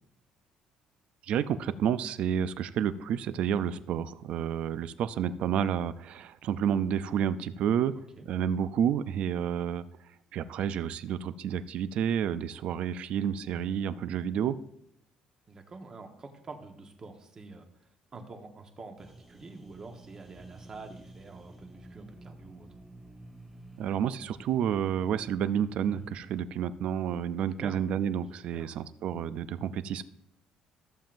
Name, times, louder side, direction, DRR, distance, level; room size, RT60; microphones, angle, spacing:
voice 1, 1.3-7.9 8.3-9.8 10.3-14.6 23.8-30.0, right 9 dB, 60° right, 14 dB, 0.4 m, -30 dB
voice 2, 15.5-17.6 18.1-22.7 27.6-27.8 28.5-28.7, right 3 dB, 30° right, 4 dB, 1.2 m, -46 dB
sound 1, 19.0-26.4, right 2 dB, 5° right, 1.8 m, -51 dB
14.0 x 7.3 x 2.6 m, 0.79 s
cardioid pair, 135°, 2 cm